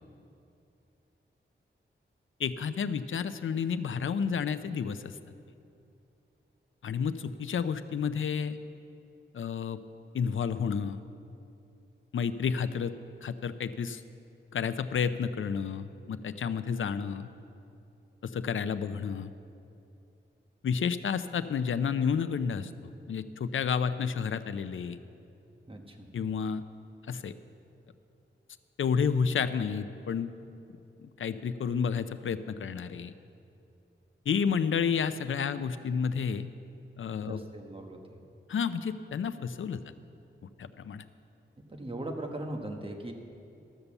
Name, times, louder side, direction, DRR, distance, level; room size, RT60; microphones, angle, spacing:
voice 1, 2.4-5.1 6.8-8.6 9.3-9.8 10.1-11.0 12.1-12.9 13.2-14.0 14.5-17.3 18.2-19.3 20.6-22.7 23.1-25.0 26.1-26.6 27.1-27.3 28.8-30.3 31.0-33.1 34.3-36.5 37.0-37.4 38.5-39.8 40.6-41.0, left 6 dB, 80° left, 12 dB, 0.5 m, -30 dB
voice 2, 25.7-26.1 37.2-38.2 41.7-43.1, right 1 dB, 25° right, 3 dB, 1.2 m, -39 dB
12.5 x 6.8 x 7.0 m, 2.7 s
wide cardioid pair, 90°, 20 cm